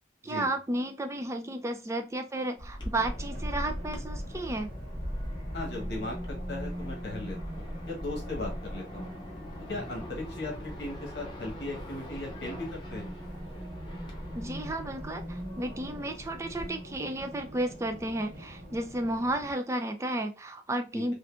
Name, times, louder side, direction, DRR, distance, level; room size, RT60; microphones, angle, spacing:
voice 1, 0.2-4.7 14.3-21.1, right 1 dB, 15° right, 6 dB, 0.3 m, -33 dB
sound 1, 2.6-16.7, equal, 25° left, 0.8 m, -40 dB
Race car auto racing, 2.9-19.5, equal, 40° right, 1.1 m, -43 dB
voice 2, 5.5-9.1 9.7-13.1 20.9-21.1, left 2 dB, 65° left, 0 dB, 1.0 m, -38 dB
3.5 x 2.6 x 2.3 m, 0.30 s
head